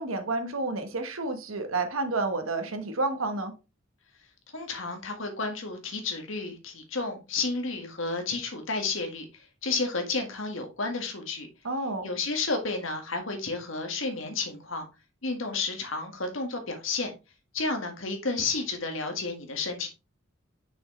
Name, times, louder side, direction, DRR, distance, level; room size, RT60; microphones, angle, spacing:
voice 1, 0.0-3.5 11.6-12.1, right 3 dB, 90° right, 1.2 m, -30 dB
voice 2, 4.5-11.5 12.0-14.8 15.2-17.1 17.5-19.9, left 3 dB, 70° left, 1.7 m, -31 dB
6.3 x 6.1 x 3.2 m
head